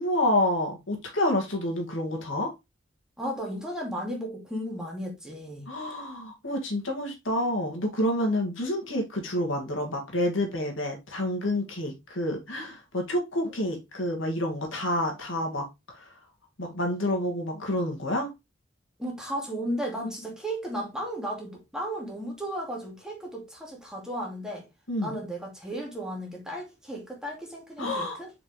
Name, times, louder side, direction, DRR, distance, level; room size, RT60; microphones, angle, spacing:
voice 1, 0.0-2.5 5.7-16.1 16.6-18.3 24.9-25.2 27.8-28.2, left 1 dB, 85° left, 2.2 m, -28 dB
voice 2, 3.2-5.7 19.0-24.6 25.0-28.3, equal, 5° right, 2.4 m, -34 dB
6.5 x 5.2 x 3.2 m
head